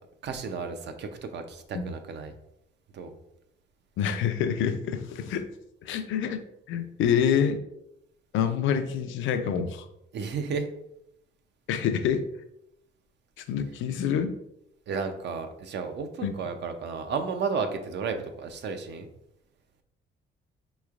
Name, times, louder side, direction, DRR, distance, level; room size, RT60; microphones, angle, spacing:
voice 1, 0.2-2.3 2.9-3.2 10.1-10.7 14.9-19.1, right 5 dB, 60° right, 6 dB, 0.6 m, -33 dB
voice 2, 4.0-5.5 5.8-7.6 8.3-9.9 11.7-12.3 13.5-14.3 16.2-16.3, left 8 dB, 80° left, 9 dB, 0.4 m, -27 dB
4.3 x 3.1 x 2.4 m, 0.81 s
cardioid pair, 90°, 20 cm